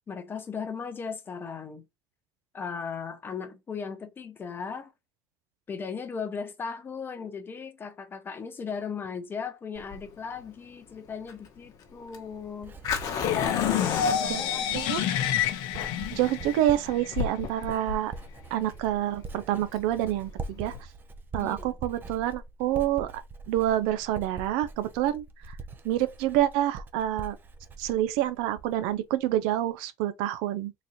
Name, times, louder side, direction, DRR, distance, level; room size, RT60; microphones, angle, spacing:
voice 1, 0.1-1.8 2.5-4.9 5.7-12.8 13.3-14.7 21.4-21.7, left 6 dB, 25° left, 0.7 m, -37 dB
Fire, 9.8-20.8, left 6 dB, 50° left, 1.1 m, -36 dB
Writing, 11.9-28.9 29.2-29.7, right 4 dB, 25° right, 0.4 m, -43 dB
sound 1, 13.2-17.2, left 9 dB, 75° left, 0.6 m, -28 dB
voice 2, 16.1-18.1 18.5-20.8 21.3-25.6 25.8-27.4 27.8-30.7, right 13 dB, 80° right, 0.5 m, -27 dB
3.9 x 2.6 x 2.8 m
cardioid pair, 135°, 8 cm